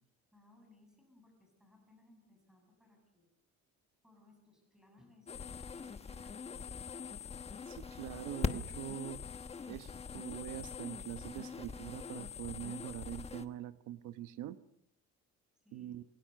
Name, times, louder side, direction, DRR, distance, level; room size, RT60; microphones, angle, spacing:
voice 1, 0.3-3.3 4.0-5.6 6.0-7.3 15.5-16.0, left 2 dB, ahead, 3 dB, 7.2 m, -65 dB
sound 1, 5.3-13.5, left 5 dB, 20° left, 1.2 m, -42 dB
voice 2, 7.7-9.2 9.7-14.6 15.7-16.0, right 13 dB, 80° right, 11 dB, 1.2 m, -44 dB
28.5 x 21.5 x 6.5 m, 0.73 s
cardioid pair, 155°, 30 cm